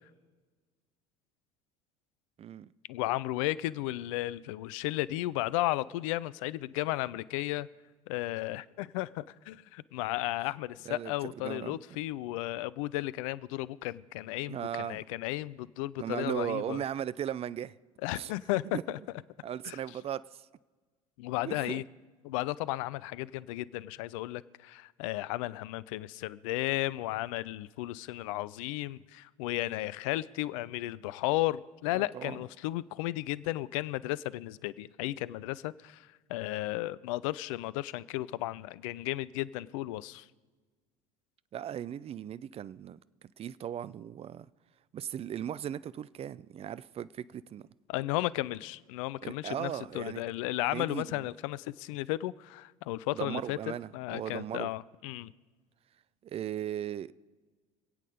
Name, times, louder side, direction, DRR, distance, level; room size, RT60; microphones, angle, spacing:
voice 1, 2.4-2.7 10.9-11.8 14.5-15.0 16.0-17.7 18.1-18.3 18.6-18.8 19.4-20.5 21.5-21.8 31.9-32.4 41.5-43.0 43.4-44.5 44.9-47.6 49.2-50.2 50.7-51.2 53.1-54.7 56.2-57.1, right 10 dB, 35° right, 0.5 m, -37 dB
voice 2, 2.9-7.7 8.1-16.8 18.0-19.0 19.6-19.8 21.2-21.8 22.2-40.3 47.9-55.3, left 17 dB, 65° left, 0.5 m, -34 dB
25.5 x 8.5 x 5.0 m
figure-of-eight pair, 65°, 18 cm